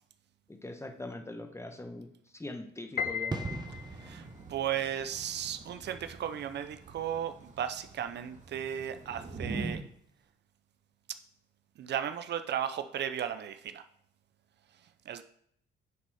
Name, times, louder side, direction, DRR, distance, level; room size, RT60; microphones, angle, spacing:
voice 1, 0.5-3.8, left 2 dB, 15° left, 7 dB, 1.1 m, -42 dB
Piano, 3.0-4.3, left 7 dB, 50° left, 0.5 m, -35 dB
sound 1, 3.3-9.8 10.1-10.2, right 3 dB, 20° right, 0.9 m, -45 dB
Thunder / Rain, 3.7-9.7, right 3 dB, 40° right, 1.6 m, -44 dB
voice 2, 4.0-9.8 11.1-11.2 11.8-13.8 15.1-15.2, right 9 dB, 60° right, 10 dB, 0.6 m, -35 dB
9.4 x 4.1 x 4.8 m, 0.68 s
cardioid pair, 90°, 20 cm